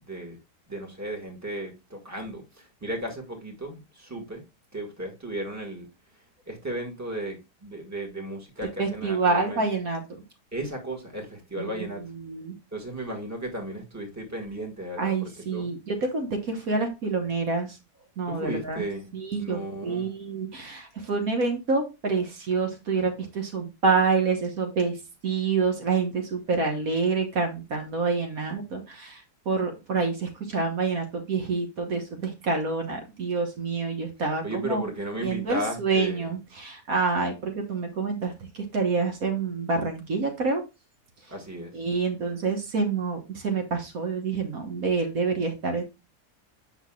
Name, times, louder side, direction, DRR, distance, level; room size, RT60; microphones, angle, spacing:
voice 1, 0.1-0.4 0.7-4.4 4.7-5.9 6.5-9.6 10.5-12.0 12.7-15.7 18.3-19.1 19.4-20.1 34.4-36.3 41.3-41.7, right 1 dB, 10° right, 1.7 m, -35 dB
voice 2, 8.8-10.0 11.6-12.5 15.0-17.8 18.2-18.8 19.1-34.9 35.2-40.6 41.7-45.8, right 4 dB, 65° right, 1.6 m, -27 dB
8.1 x 5.8 x 2.3 m
omnidirectional pair, 1.7 m